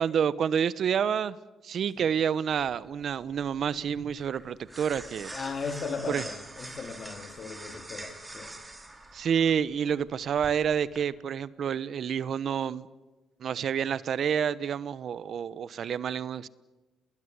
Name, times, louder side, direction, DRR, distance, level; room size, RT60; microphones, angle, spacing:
voice 1, 0.0-1.4 1.6-5.3 6.1-6.3 9.1-12.9 13.4-16.5, right 8 dB, 60° right, 1.0 m, -28 dB
sound 1, 2.5-11.0, right 2 dB, 15° right, 4.6 m, -45 dB
voice 2, 5.3-8.5, left 5 dB, 45° left, 3.2 m, -37 dB
29.5 x 20.5 x 8.2 m
cardioid pair, 90°, 0 cm